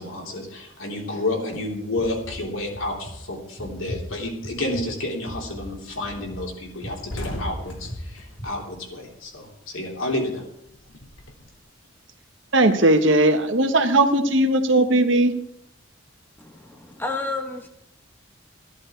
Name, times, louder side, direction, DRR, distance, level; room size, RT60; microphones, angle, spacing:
voice 1, 0.0-10.4, left 1 dB, 90° left, -1 dB, 3.5 m, -30 dB
sound 1, 2.0-2.4 2.7-3.1 3.6-4.0 4.4-4.9 5.2-5.7 6.0-6.5 6.8-7.2 7.6-8.1 8.4-8.5, equal, 40° left, 6.6 m, -37 dB
sound 2, 5.1-5.3 5.7-5.9 6.1-6.3 6.6-9.6 9.9-11.5, equal, 70° left, 2.3 m, -37 dB
voice 2, 12.5-15.3, right 1 dB, 65° right, 7 dB, 1.3 m, -18 dB
voice 3, 16.4-17.7, left 3 dB, 10° left, 3 dB, 1.2 m, -31 dB
14.5 x 11.0 x 4.5 m, 0.78 s
head